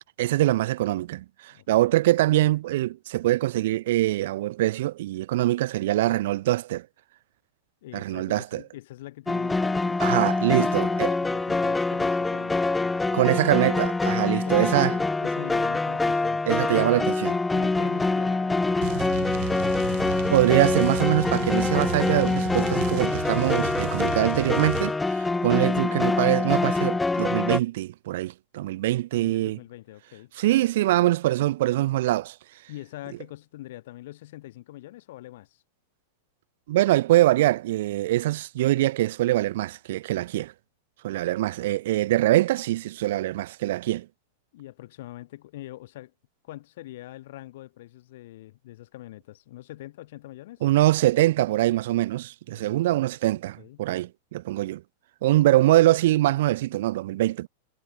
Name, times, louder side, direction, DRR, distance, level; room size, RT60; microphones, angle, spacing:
voice 1, 0.2-6.9 7.9-8.6 10.0-11.2 13.1-14.9 16.5-17.3 20.3-29.6 30.4-32.4 36.7-40.5 41.0-44.1 50.6-54.8 55.2-57.5, right 15 dB, 55° right, 0.4 m, -23 dB
voice 2, 1.5-2.0 7.8-13.2 14.2-16.9 17.5-19.0 29.1-30.3 32.7-35.6 44.5-46.1 46.4-50.7 52.5-53.0 53.6-53.8, left 16 dB, 55° left, 7.1 m, -43 dB
sound 1, 9.3-27.6, left 3 dB, 5° left, 0.4 m, -25 dB
sound 2, 18.8-24.9, right 36 dB, 40° right, 3.8 m, -34 dB
supercardioid pair, 170°, 0 cm